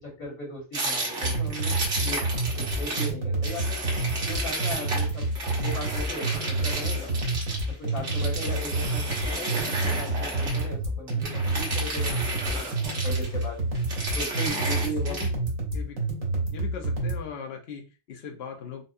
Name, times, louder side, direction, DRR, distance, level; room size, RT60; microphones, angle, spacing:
voice 1, 0.0-2.2 2.5-7.1 7.7-12.7 13.0-13.6 14.1-15.2, left 1 dB, 70° left, -4 dB, 2.0 m, -37 dB
sound 1, 0.7-3.1 3.4-10.7 11.1-13.4 13.7-15.3, right 2 dB, 55° right, 1.4 m, -33 dB
sound 2, 1.2-17.2, right 2 dB, 75° right, 1.6 m, -28 dB
voice 2, 14.5-15.3 15.7-16.0 16.5-18.8, left 5 dB, 55° left, 2 dB, 0.9 m, -40 dB
4.1 x 2.4 x 2.6 m, 0.31 s
omnidirectional pair, 1.4 m